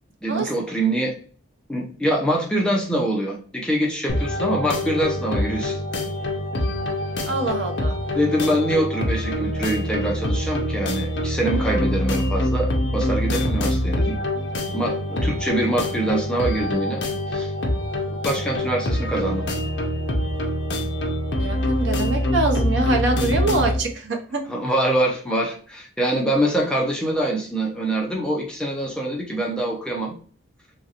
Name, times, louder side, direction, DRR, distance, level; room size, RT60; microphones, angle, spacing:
voice 1, 0.2-1.1 1.7-5.8 8.1-14.2 14.7-17.0 17.3-17.5 18.2-19.4 24.5-30.1, right 1 dB, 5° left, -1 dB, 0.5 m, -24 dB
sound 1, 4.1-23.8, left 1 dB, 60° left, 0.6 m, -25 dB
voice 2, 7.3-7.9 21.4-24.4, right 2 dB, 60° right, 3 dB, 0.6 m, -24 dB
3.0 x 2.5 x 2.8 m, 0.43 s
head